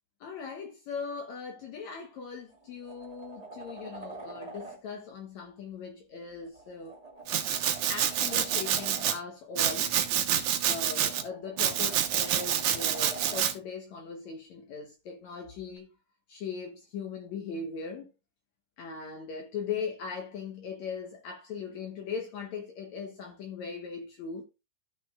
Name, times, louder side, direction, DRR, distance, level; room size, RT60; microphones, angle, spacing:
voice 1, 0.2-7.0 7.9-9.9 10.3-15.9 16.3-18.1 18.8-24.4, left 5 dB, 65° left, 2.1 m, -39 dB
sound 1, 2.5-4.8 6.4-9.2 10.7-13.5 15.8-15.9, right 3 dB, 35° right, 0.6 m, -46 dB
Domestic sounds home sounds, 7.3-9.2 9.6-11.2 11.6-13.5, right 10 dB, 70° right, 2.3 m, -27 dB
13.5 x 6.3 x 2.4 m
omnidirectional pair, 3.9 m